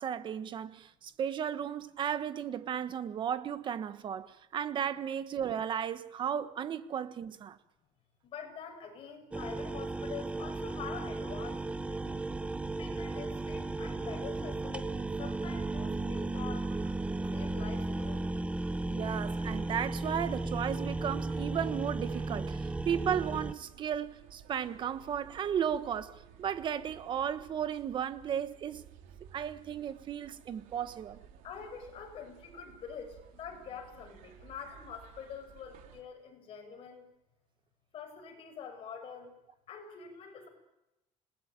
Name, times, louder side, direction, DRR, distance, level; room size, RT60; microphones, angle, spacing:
voice 1, 0.0-7.6 18.9-28.8 29.3-31.2, right 8 dB, 35° right, 1.4 m, -35 dB
voice 2, 8.2-12.2 12.8-16.7 17.3-18.2 31.4-37.1 37.9-39.3 39.7-40.5, left 7 dB, 45° left, 6.8 m, -46 dB
sound 1, 9.3-23.5, right 2 dB, 10° right, 0.9 m, -35 dB
sound 2, 16.6-36.0, right 8 dB, 80° right, 3.7 m, -56 dB
27.5 x 20.0 x 9.2 m
cardioid pair, 170°, 13 cm